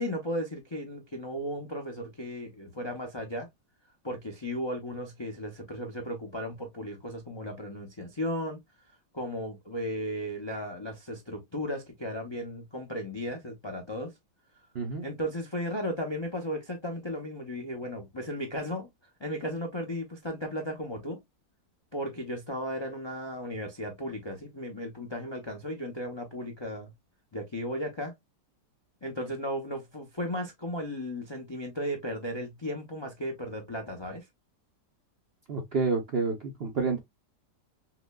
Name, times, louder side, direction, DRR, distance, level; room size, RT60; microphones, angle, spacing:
voice 1, 0.0-3.5 4.0-8.6 9.1-14.1 15.0-18.9 19.2-21.2 21.9-26.9 27.3-28.1 29.0-34.3, equal, 45° left, 0.3 m, -35 dB
voice 2, 14.7-15.1 35.5-36.3 36.6-37.0, right 4 dB, 60° right, 0.6 m, -28 dB
5.8 x 2.2 x 2.2 m
omnidirectional pair, 1.8 m